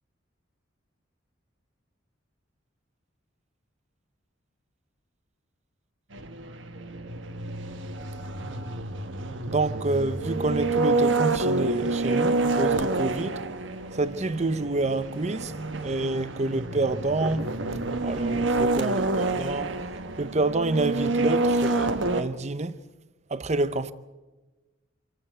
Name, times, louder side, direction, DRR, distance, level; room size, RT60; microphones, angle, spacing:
sound 1, 6.1-22.2, right 2 dB, 70° right, 1.3 m, -28 dB
voice 1, 9.5-13.4 13.9-15.5 15.8-17.5 18.0-19.8 20.2-22.8 23.3-23.9, right 2 dB, 35° right, 0.7 m, -28 dB
26.0 x 15.5 x 8.1 m
head